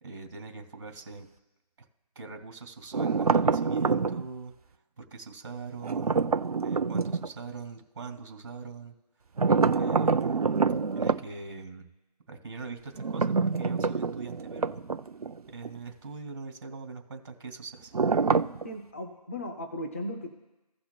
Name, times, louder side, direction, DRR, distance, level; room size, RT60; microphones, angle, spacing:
voice 1, 0.0-1.3 2.2-4.5 5.0-6.3 6.6-8.9 9.7-10.6 10.9-11.9 12.3-14.8 15.5-17.9, right 4 dB, 30° right, 5 dB, 2.3 m, -42 dB
sound 1, 2.9-4.3 5.8-7.3 9.4-11.2 13.0-15.4 15.6-15.8 17.9-18.7, right 4 dB, 65° right, 0.7 m, -26 dB
voice 2, 18.6-20.3, left 1 dB, 20° left, 4 dB, 0.5 m, -36 dB
17.0 x 5.8 x 2.3 m, 1.0 s
figure-of-eight pair, 165°, 21 cm